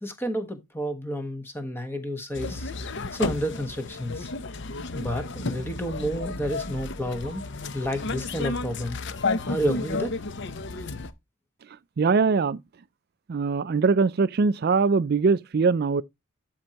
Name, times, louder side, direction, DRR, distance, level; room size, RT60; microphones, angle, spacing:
voice 1, 0.0-2.7 3.1-4.3 4.9-7.4 7.7-9.0 9.5-10.2, equal, 10° left, 1.3 m, -30 dB
sound 1, 2.3-11.1, left 3 dB, 55° left, 0.7 m, -32 dB
voice 2, 12.0-12.6 13.3-16.0, right 4 dB, 45° right, 0.4 m, -22 dB
12.5 x 4.5 x 2.9 m
head